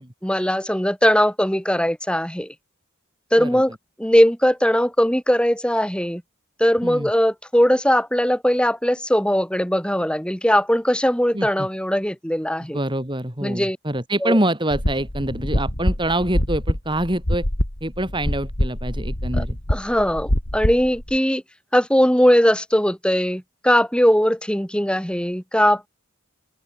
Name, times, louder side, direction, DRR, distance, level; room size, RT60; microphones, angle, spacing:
voice 1, 0.0-2.5 3.3-6.2 6.6-12.8 13.4-13.8 14.2-14.4 19.3-21.4 21.7-25.9, equal, 5° left, 6.8 m, -20 dB
voice 2, 11.3-11.7 12.7-17.5 17.8-19.6, right 1 dB, 20° right, 3.8 m, -25 dB
sound 1, 14.7-21.2, left 1 dB, 55° left, 3.9 m, -25 dB
open air
head